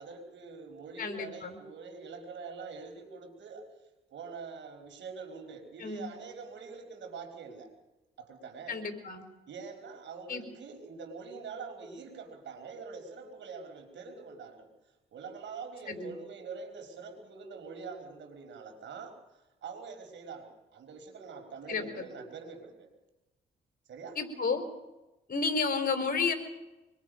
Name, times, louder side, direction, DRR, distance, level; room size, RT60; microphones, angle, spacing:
voice 1, 0.0-3.7 4.1-7.7 8.2-8.8 9.5-14.7 15.1-19.2 19.6-22.9 23.9-24.2, right 5 dB, 75° right, 4 dB, 4.8 m, -44 dB
voice 2, 1.0-1.5 5.8-6.1 8.7-9.2 10.3-10.4 15.9-16.1 21.7-22.0 24.2-24.6 25.3-26.3, left 4 dB, 50° left, 6 dB, 4.2 m, -31 dB
25.0 x 22.5 x 5.3 m, 1.0 s
cardioid pair, 75°, 19 cm